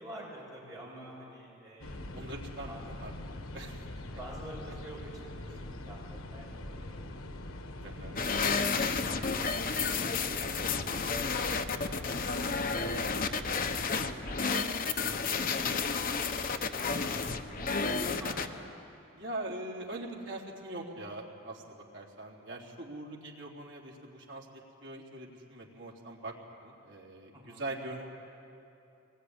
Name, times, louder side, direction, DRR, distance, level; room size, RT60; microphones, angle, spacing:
voice 1, 0.0-2.1 2.7-2.9 4.2-7.4 7.9-10.1 10.3-10.5 10.8-11.5 12.8-16.7 17.1-18.6 27.3-27.7, equal, 20° right, -4 dB, 7.1 m, -50 dB
sound 1, 1.8-13.9, left 1 dB, 85° left, 1.4 m, -43 dB
voice 2, 2.1-3.9 5.5-5.6 7.8-8.2 16.2-16.6 19.2-28.2, right 2 dB, 60° right, -1 dB, 3.7 m, -43 dB
sound 2, 8.2-18.5, left 4 dB, 40° left, 1.1 m, -31 dB
24.0 x 20.5 x 9.9 m, 2.7 s
head